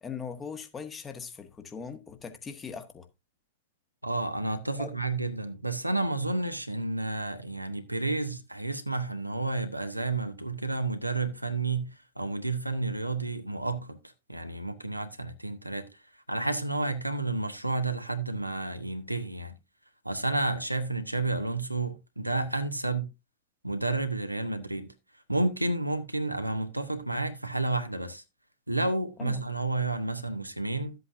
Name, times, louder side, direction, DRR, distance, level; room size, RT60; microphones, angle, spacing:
voice 1, 0.0-3.0 4.8-4.9 29.2-29.4, left 6 dB, 20° left, 1.5 m, -40 dB
voice 2, 4.0-14.0 14.3-15.8 16.3-19.5 20.0-23.1 23.6-24.9 25.3-28.2 28.7-30.9, right 2 dB, 85° right, 1.0 m, -31 dB
12.5 x 8.0 x 2.6 m
figure-of-eight pair, 90°, 0 cm